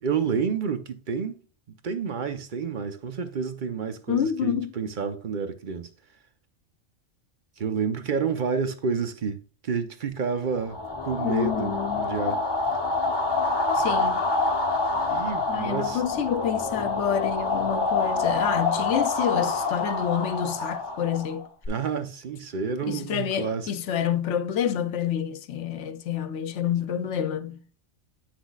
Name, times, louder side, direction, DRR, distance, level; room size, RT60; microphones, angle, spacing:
voice 1, 0.0-1.4 1.8-5.9 7.6-12.4 15.1-16.0 21.7-23.7, right 6 dB, 45° right, 0.9 m, -29 dB
voice 2, 4.1-4.7 11.2-12.2 13.7-14.2 15.5-21.5 22.9-27.6, left 9 dB, 75° left, 0.9 m, -28 dB
sound 1, 10.5-21.7, left 3 dB, 25° left, 0.8 m, -27 dB
8.3 x 6.0 x 2.4 m
omnidirectional pair, 1.3 m